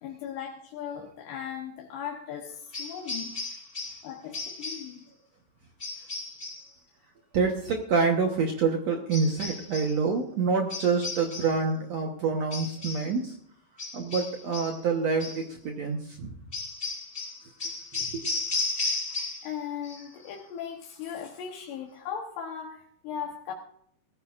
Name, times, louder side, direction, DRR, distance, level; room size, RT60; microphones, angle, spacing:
voice 1, 0.0-3.4 4.0-5.0 19.4-23.5, left 8 dB, 80° left, 0 dB, 3.2 m, -38 dB
sound 1, 2.7-4.1 4.3-5.0 5.8-6.7 9.1-10.0 10.7-11.6 12.5-13.1 13.8-14.8 15.2-15.5 16.5-19.6 19.8-20.3, left 3 dB, 25° left, 1.2 m, -35 dB
voice 2, 7.3-13.3 13.9-16.3 18.1-18.2, right 4 dB, 75° right, 2 dB, 1.5 m, -27 dB
19.0 x 14.0 x 2.5 m, 0.67 s
omnidirectional pair, 4.8 m